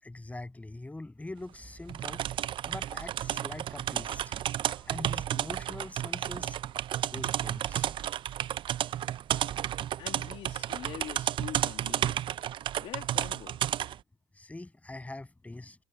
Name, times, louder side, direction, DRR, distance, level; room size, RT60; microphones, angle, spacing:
voice 1, 0.0-2.2 2.7-4.3 4.7-6.6 7.1-7.9 14.4-15.8, left 2 dB, 15° left, 7.7 m, -43 dB
sound 1, 1.9-14.0, right 11 dB, 55° right, 0.8 m, -32 dB
voice 2, 10.0-12.2 12.8-13.6, left 12 dB, 60° left, 1.7 m, -44 dB
hypercardioid pair, 60°, 11 cm